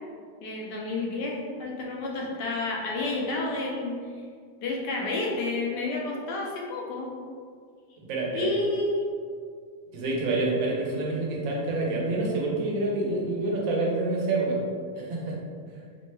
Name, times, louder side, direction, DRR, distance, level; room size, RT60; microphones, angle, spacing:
voice 1, 0.4-4.0 4.6-7.1 8.3-9.0, left 2 dB, 75° left, -2 dB, 1.1 m, -30 dB
voice 2, 8.0-8.5 9.9-14.6 14.9-15.4, right 2 dB, 80° right, -2 dB, 1.4 m, -27 dB
4.3 x 2.1 x 3.2 m, 2.1 s
omnidirectional pair, 2.0 m